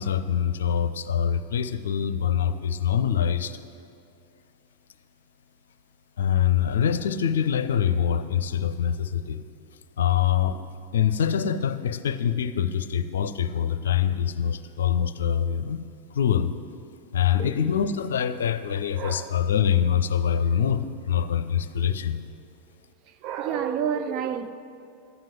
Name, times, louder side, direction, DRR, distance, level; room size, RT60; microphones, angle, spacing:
voice 1, 0.0-3.6 6.2-9.4 10.0-10.6 10.9-16.5 17.1-22.2, left 8 dB, 65° left, 0.6 m, -24 dB
voice 2, 19.0-19.4 23.2-24.5, right 8 dB, 40° right, 0.5 m, -29 dB
12.0 x 9.1 x 7.7 m
figure-of-eight pair, 90°, 0 cm